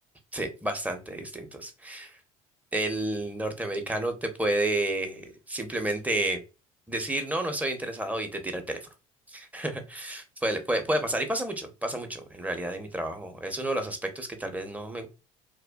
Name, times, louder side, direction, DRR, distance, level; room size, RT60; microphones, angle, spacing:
voice 1, 0.3-2.2 2.7-6.4 6.9-8.8 9.3-15.1, right 1 dB, 10° right, 0.6 m, -30 dB
2.6 x 2.2 x 2.2 m
hypercardioid pair, 55°, 18 cm